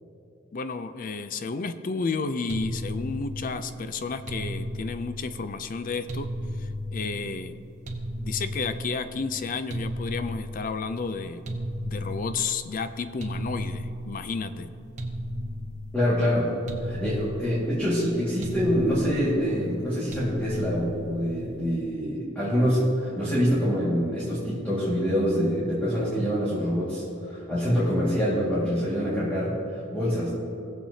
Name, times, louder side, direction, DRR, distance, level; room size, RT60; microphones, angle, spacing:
voice 1, 0.5-6.3 6.6-7.6 8.2-11.6 11.8-14.7, left 4 dB, 40° left, 11 dB, 0.4 m, -32 dB
sound 1, 2.5-21.8, equal, 35° right, 1.0 m, -35 dB
voice 2, 15.9-16.5 16.8-30.3, equal, 5° left, -9 dB, 1.9 m, -25 dB
19.0 x 7.4 x 2.8 m, 2.6 s
head